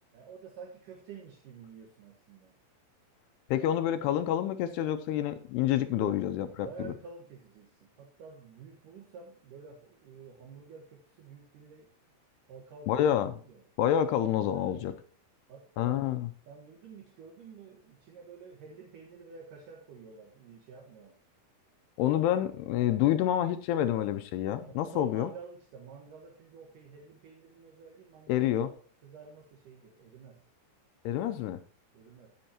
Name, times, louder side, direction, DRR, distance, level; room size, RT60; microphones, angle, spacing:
voice 1, 0.1-2.5 5.9-6.2 6.6-11.9 12.5-13.6 14.2-15.0 15.5-21.2 24.6-30.4 31.9-32.3, right 5 dB, 65° right, 1 dB, 2.4 m, -49 dB
voice 2, 3.5-6.9 12.9-13.3 13.8-14.9 15.8-16.3 22.0-25.3 28.3-28.7 31.1-31.6, left 11 dB, 85° left, 9 dB, 2.5 m, -28 dB
15.5 x 7.7 x 2.9 m, 0.43 s
omnidirectional pair, 5.1 m